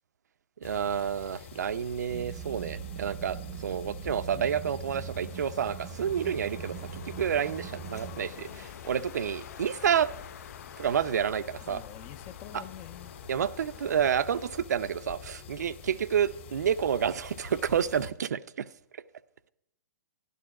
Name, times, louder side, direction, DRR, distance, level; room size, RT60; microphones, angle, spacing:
sound 1, 0.6-18.1, left 10 dB, 45° left, 1.8 m, -47 dB
voice 1, 0.6-3.4 3.6-10.1 10.8-11.8 12.5-12.6 13.3-18.7, right 8 dB, 85° right, 0.6 m, -29 dB
sound 2, 2.1-8.2, right 9 dB, 35° right, 0.6 m, -41 dB
Wind, 4.9-14.7, left 7 dB, 75° left, 0.6 m, -49 dB
voice 2, 11.6-13.2, left 11 dB, 20° left, 0.4 m, -46 dB
11.5 x 11.0 x 4.8 m
hypercardioid pair, 165°, 9 cm